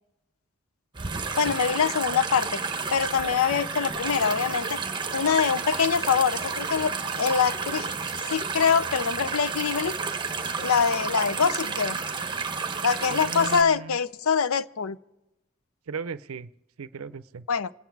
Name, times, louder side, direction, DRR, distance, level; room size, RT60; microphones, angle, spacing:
sound 1, 0.9-13.6, right 5 dB, 20° right, 0.9 m, -31 dB
voice 1, 1.4-2.6 2.9-4.8 5.1-7.9 8.2-9.9 10.6-12.0 12.8-15.0 17.5-17.7, left 6 dB, 80° left, 16 dB, 0.6 m, -24 dB
voice 2, 13.1-14.0 15.9-16.5 16.8-17.4, right 5 dB, 85° right, 15 dB, 0.6 m, -37 dB
26.5 x 9.2 x 4.7 m, 0.98 s
head